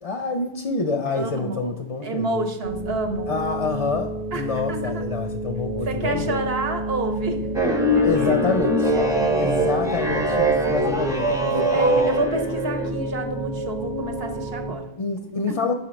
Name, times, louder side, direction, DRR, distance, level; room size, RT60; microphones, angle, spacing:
voice 1, 0.0-2.4 3.3-6.4 8.0-8.9 9.4-12.1 15.0-15.7, left 4 dB, 45° left, 5 dB, 0.4 m, -27 dB
voice 2, 1.2-1.7 2.0-3.3 4.3-5.0 5.8-7.4 7.9-8.4 8.9-9.5 11.5-14.9 15.5-15.6, right 2 dB, 75° right, 4 dB, 1.0 m, -29 dB
sound 1, 2.6-14.8, right 1 dB, 30° right, 0.8 m, -30 dB
sound 2, 7.5-12.9, right 1 dB, 5° right, 0.5 m, -22 dB
5.3 x 4.3 x 5.1 m, 0.95 s
omnidirectional pair, 1.0 m